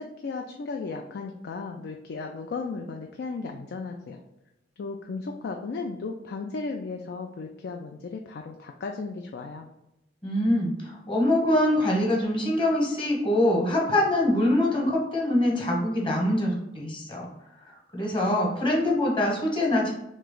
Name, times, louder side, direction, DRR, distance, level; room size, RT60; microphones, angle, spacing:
voice 1, 0.0-4.2 4.8-9.7, left 4 dB, 60° left, 3 dB, 0.4 m, -35 dB
voice 2, 10.2-17.3 17.7-19.9, left 1 dB, 30° left, -2 dB, 1.1 m, -24 dB
3.3 x 3.1 x 3.8 m, 0.87 s
head